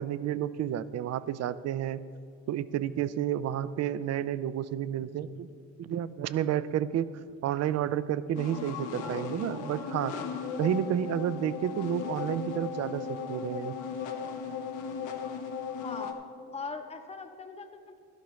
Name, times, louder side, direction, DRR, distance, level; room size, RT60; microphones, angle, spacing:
voice 1, 0.0-2.0 2.5-5.5 5.8-7.1 7.4-10.1 10.6-13.8, right 10 dB, 60° right, 16 dB, 0.5 m, -30 dB
sound 1, 8.4-16.1, left 6 dB, 85° left, 0.9 m, -36 dB
voice 2, 15.8-16.2 16.5-18.0, left 4 dB, 20° left, 6 dB, 0.8 m, -40 dB
12.5 x 11.5 x 3.1 m, 2.2 s
cardioid pair, 90°, 30 cm